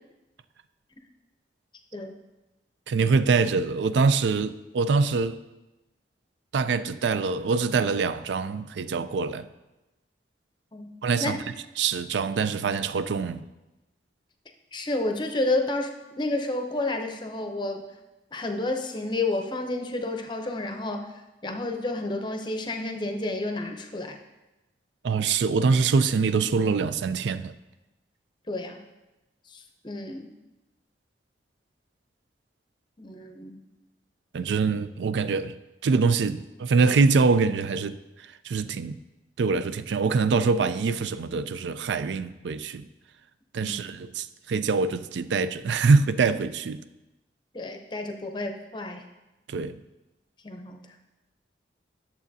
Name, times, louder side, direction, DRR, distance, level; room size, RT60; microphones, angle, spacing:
voice 1, 2.9-5.4 6.5-9.5 11.0-11.4 11.8-13.4 25.0-27.5 34.3-35.6 35.8-38.0 38.4-39.0 39.4-42.9 43.5-46.8 49.5-49.8, right 4 dB, 80° right, 0.4 m, -24 dB
voice 2, 14.7-17.8 18.3-21.1 21.4-24.2 28.5-28.8 29.5-30.3 33.0-33.6 43.6-43.8 47.5-49.0 50.4-50.8, left 2 dB, 25° left, 0.6 m, -30 dB
11.0 x 7.0 x 2.7 m
head